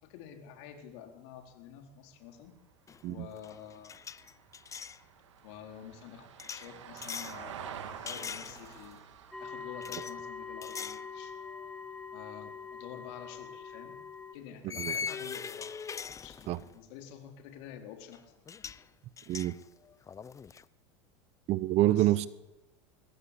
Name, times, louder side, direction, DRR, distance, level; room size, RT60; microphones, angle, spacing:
voice 1, 0.0-2.5 3.0-3.9 5.4-9.1 9.4-11.3 12.1-14.0 14.3-15.8 16.2-18.4 18.6-18.9 21.9-22.2, left 9 dB, 65° left, 5 dB, 4.3 m, -49 dB
Vehicle, 2.2-12.7 15.0-15.1, right 8 dB, 85° right, 2.9 m, -50 dB
sound 1, 2.9-3.1 3.4-5.0 6.4-7.4 8.1-8.9 9.8-10.1 10.6-11.1 11.5-11.7 13.2-13.3 14.7-16.8 18.1-18.2 18.5-18.8 19.2-20.6, left 6 dB, 20° left, 0.7 m, -41 dB
sound 2, 9.3-14.3, left 5 dB, 5° left, 1.6 m, -43 dB
voice 2, 21.5-22.3, right 15 dB, 45° right, 17 dB, 0.9 m, -27 dB
22.5 x 15.5 x 8.5 m, 1.0 s
hypercardioid pair, 105°, 15 cm